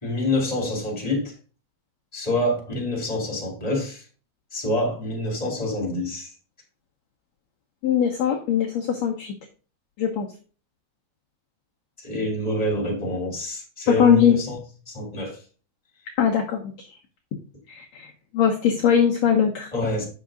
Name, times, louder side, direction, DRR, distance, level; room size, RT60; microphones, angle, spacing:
voice 1, 0.0-1.3 2.1-4.0 4.5-6.3 12.0-14.6 14.9-15.4 19.7-20.0, left 1 dB, 10° left, 2.7 m, -26 dB
voice 2, 7.8-9.3 10.0-10.3 13.9-14.4 16.2-16.7 17.7-19.7, left 8 dB, 70° left, 1.7 m, -21 dB
8.5 x 6.9 x 3.8 m
omnidirectional pair, 4.5 m